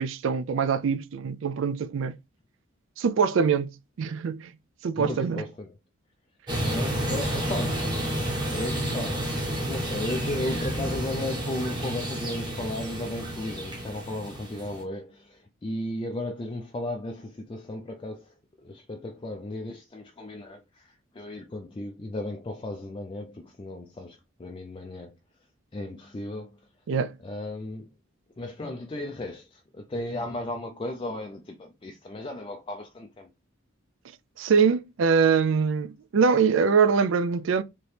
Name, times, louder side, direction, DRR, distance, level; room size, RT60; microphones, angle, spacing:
voice 1, 0.0-2.2 3.0-4.5 4.8-5.4 26.9-27.1 34.4-37.6, right 6 dB, 60° right, 0.4 m, -23 dB
voice 2, 4.9-5.7 6.7-8.1 8.5-9.3 9.6-25.2 25.7-26.6 27.2-27.9 28.4-33.3, left 1 dB, 25° left, 0.4 m, -35 dB
sound 1, 6.5-14.8, right 1 dB, 20° right, 1.1 m, -30 dB
4.3 x 2.9 x 3.2 m
head